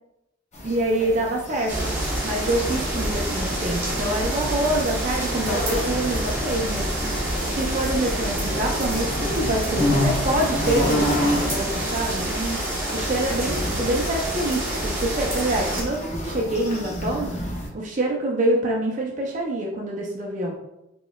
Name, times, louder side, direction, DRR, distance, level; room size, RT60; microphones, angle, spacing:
sound 1, 0.5-17.7, left 1 dB, 35° left, 0.7 m, -31 dB
voice 1, 0.6-1.9 2.2-6.9 7.4-12.6 12.9-17.3 17.7-20.5, right 1 dB, 40° right, -1 dB, 0.5 m, -26 dB
sound 2, 1.7-15.8, right 1 dB, 15° right, 1.1 m, -27 dB
4.1 x 3.7 x 2.3 m, 0.87 s
head